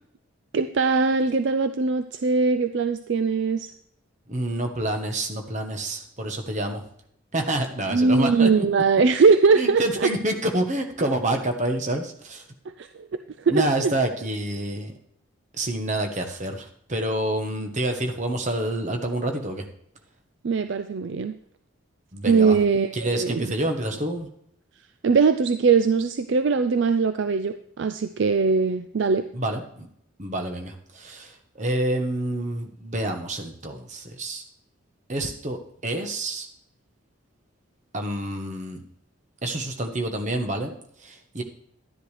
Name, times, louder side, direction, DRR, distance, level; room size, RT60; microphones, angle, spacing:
voice 1, 0.5-3.7 7.9-10.1 12.7-13.9 20.4-21.4 22.2-23.5 25.0-29.3, right 4 dB, 60° right, 9 dB, 0.4 m, -21 dB
voice 2, 4.3-6.8 7.3-8.6 9.6-12.4 13.5-14.9 15.6-19.6 22.1-22.6 22.9-24.3 29.3-29.9 30.2-34.4 35.1-36.5 37.9-38.8 39.4-41.4, right 1 dB, 35° right, 5 dB, 1.2 m, -28 dB
12.0 x 10.0 x 3.3 m, 0.67 s
head